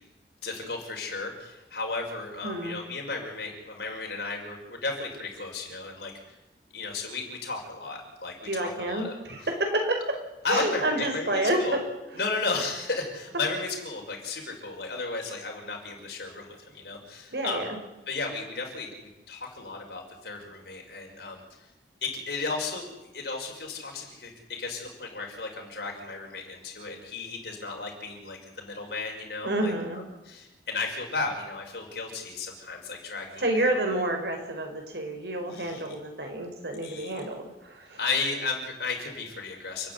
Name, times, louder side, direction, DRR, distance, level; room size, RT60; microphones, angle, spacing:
voice 1, 0.4-6.3 6.7-9.1 10.4-11.8 12.1-17.7 18.1-21.6 22.0-33.8 35.5-35.9 36.8-37.1 38.0-39.9, left 3 dB, 65° left, 0 dB, 5.9 m, -34 dB
voice 2, 2.4-2.8 8.4-10.0 10.5-11.8 17.3-17.8 29.4-30.0 33.4-38.0, right 1 dB, 65° right, 4 dB, 5.0 m, -29 dB
30.0 x 10.0 x 9.8 m, 1.0 s
head